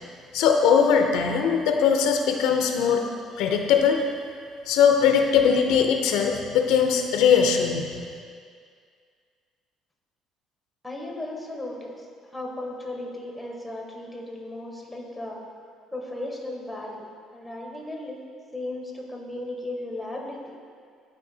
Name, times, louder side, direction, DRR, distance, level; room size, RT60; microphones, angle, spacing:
voice 1, 0.3-3.1 3.4-4.1 4.7-7.9, left 7 dB, 85° left, 4 dB, 0.6 m, -20 dB
voice 2, 10.8-12.0 12.3-15.4 15.9-17.1 17.3-18.2 18.5-20.6, left 1 dB, 5° left, -1 dB, 1.1 m, -35 dB
11.0 x 4.5 x 2.7 m, 2.1 s
cardioid pair, 125°, 0 cm